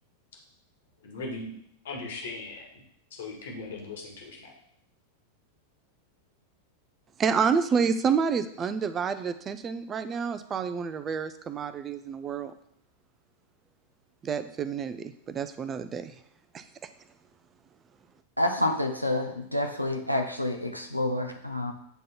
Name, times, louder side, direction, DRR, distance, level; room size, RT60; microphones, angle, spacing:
voice 1, 1.0-1.5 1.8-2.8 3.1-4.5, left 3 dB, 60° left, 0 dB, 1.7 m, -38 dB
voice 2, 7.2-12.5 14.2-16.1 16.5-16.9, right 6 dB, 25° right, 12 dB, 0.5 m, -29 dB
voice 3, 18.4-21.7, left 1 dB, 90° left, 4 dB, 0.9 m, -28 dB
9.2 x 3.8 x 4.3 m, 0.70 s
figure-of-eight pair, 90°, 0 cm